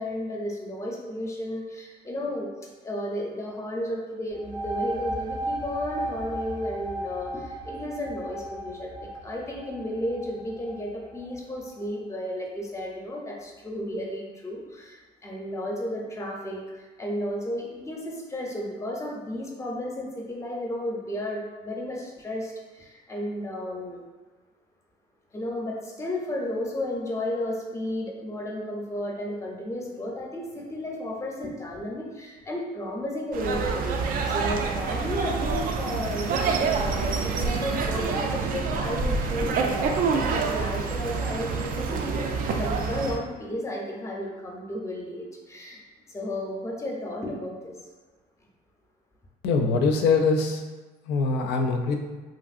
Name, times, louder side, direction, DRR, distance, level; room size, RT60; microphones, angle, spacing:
voice 1, 0.0-2.5 2.8-24.0 25.3-45.8 46.1-47.7, left 1 dB, 15° left, -1 dB, 0.5 m, -33 dB
sound 1, 4.3-11.7, right 1 dB, 75° right, 0.8 m, -35 dB
sound 2, 33.3-43.2, right 5 dB, 55° right, 0.4 m, -27 dB
voice 2, 49.4-50.6 51.1-52.0, left 4 dB, 80° left, 4 dB, 0.4 m, -23 dB
2.9 x 2.5 x 2.5 m, 1.3 s
cardioid pair, 110°, 17 cm